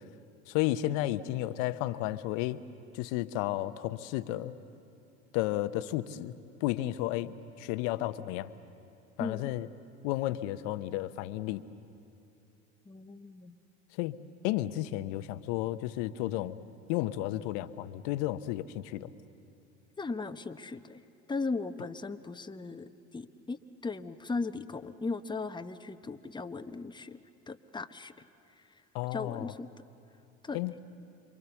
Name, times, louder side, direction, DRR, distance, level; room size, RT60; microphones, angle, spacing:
voice 1, 0.5-2.6 2.9-4.5 5.3-6.3 6.6-8.5 9.2-9.7 10.0-11.6 14.0-14.2 14.4-16.6 16.9-19.1 28.9-29.5 30.5-30.7, left 15 dB, 75° left, 13 dB, 0.9 m, -32 dB
voice 2, 9.2-9.6 12.9-13.6 20.0-21.0 21.3-27.2 27.5-28.2 29.1-29.7 30.4-30.6, left 3 dB, 10° left, 8 dB, 0.9 m, -37 dB
27.5 x 23.5 x 7.1 m, 2.6 s
hypercardioid pair, 80°, 36 cm